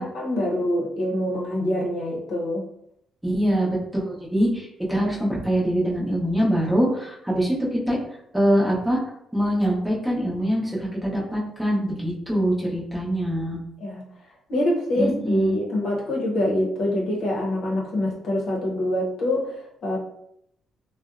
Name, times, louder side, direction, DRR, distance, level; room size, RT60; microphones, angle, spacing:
voice 1, 0.0-2.6 13.8-14.0 14.5-20.0, left 1 dB, 70° left, -2 dB, 0.7 m, -25 dB
voice 2, 3.2-8.0 8.3-9.0 9.3-13.6 15.0-15.6, equal, 5° right, -5 dB, 0.8 m, -23 dB
2.6 x 2.0 x 2.4 m, 0.74 s
cardioid pair, 90°, 0 cm